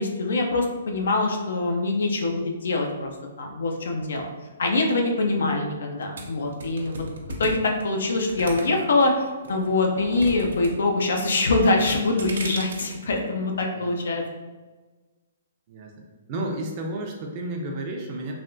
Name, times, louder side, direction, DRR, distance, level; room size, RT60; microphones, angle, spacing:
voice 1, 0.0-3.1 3.4-4.3 4.6-7.0 7.4-14.2, left 2 dB, 75° left, 2 dB, 0.5 m, -24 dB
sound 1, 6.2-9.0 9.4-10.7 11.0-11.4 11.8-12.9, right 2 dB, 85° right, 0.6 m, -36 dB
voice 2, 15.7-18.3, right 1 dB, 30° right, 1 dB, 0.5 m, -32 dB
3.3 x 2.3 x 2.5 m, 1.3 s
hypercardioid pair, 160°, 0 cm